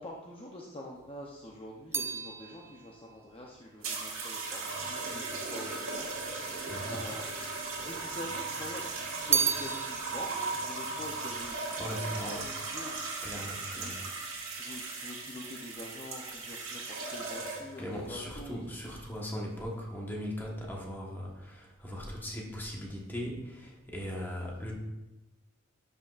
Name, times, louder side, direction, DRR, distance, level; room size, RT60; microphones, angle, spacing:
voice 1, 0.0-6.1 6.8-7.3 7.8-12.9 13.7-14.1 14.5-18.6, left 1 dB, 25° left, -2 dB, 0.7 m, -45 dB
sound 1, 1.0-5.4 6.2-7.0 7.3-8.4 8.7-12.3 12.5-13.1, right 6 dB, 15° right, 0.3 m, -35 dB
sound 2, 3.8-17.8 18.7-19.0, right 3 dB, 90° right, 1.6 m, -37 dB
voice 2, 6.7-7.0 11.8-12.5 13.2-14.0 17.8-24.7, equal, 10° left, -2 dB, 1.3 m, -39 dB
12.0 x 5.3 x 2.5 m, 1.0 s
head